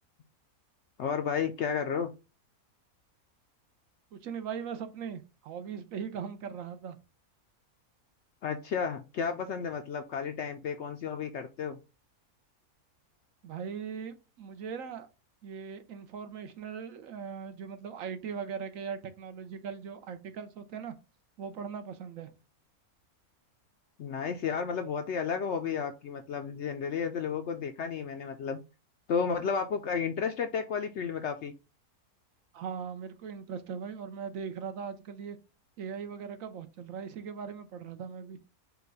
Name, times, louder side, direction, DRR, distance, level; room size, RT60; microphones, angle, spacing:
voice 1, 1.0-2.1 8.4-11.8 24.0-28.6 29.1-31.5, left 6 dB, 70° left, 0.7 m, -32 dB
voice 2, 4.1-7.0 13.4-15.1 15.4-20.9 21.4-22.3 32.5-35.4 35.8-38.4, right 7 dB, 65° right, 1.0 m, -39 dB
5.1 x 2.3 x 4.6 m
omnidirectional pair, 1.6 m